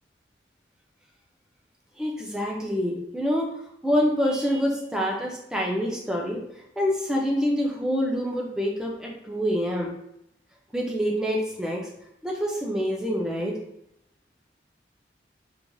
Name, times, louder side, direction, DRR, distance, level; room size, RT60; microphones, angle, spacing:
voice 1, 2.0-3.5 3.8-6.4 6.8-9.9 10.7-11.8 12.2-13.6, equal, 5° right, -1 dB, 0.4 m, -26 dB
3.2 x 2.4 x 2.3 m, 0.77 s
head